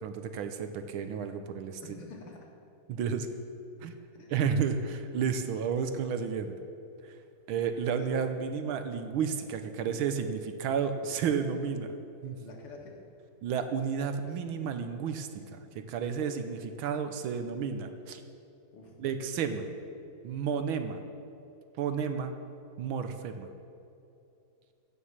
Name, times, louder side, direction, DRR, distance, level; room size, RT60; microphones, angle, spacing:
voice 1, 0.0-1.8 2.9-3.3 3.8-3.9 4.3-6.5 7.0-7.1 7.5-11.9 12.2-12.4 13.4-15.6 15.9-18.2 19.0-19.6 20.2-21.0 21.8-22.4 22.8-23.5, right 6 dB, 75° right, 8 dB, 1.5 m, -32 dB
voice 2, 1.8-2.5 4.1-4.3 7.5-7.6 7.9-8.5 12.4-13.0 18.7-18.9, left 3 dB, 80° left, 0 dB, 2.7 m, -49 dB
16.5 x 6.5 x 7.2 m, 2.8 s
omnidirectional pair, 2.4 m